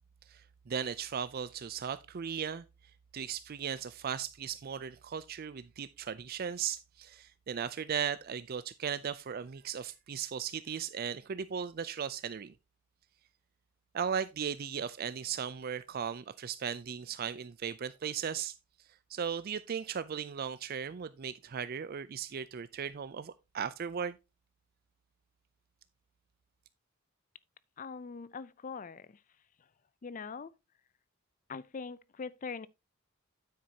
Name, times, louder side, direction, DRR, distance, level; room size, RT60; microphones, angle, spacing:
voice 1, 0.3-2.6 3.1-12.5 13.9-18.5 19.1-24.2, right 7 dB, 45° right, 0.4 m, -37 dB
voice 2, 27.8-29.2 30.0-30.5 31.5-32.7, left 5 dB, 40° left, 0.4 m, -42 dB
9.4 x 8.2 x 2.8 m
head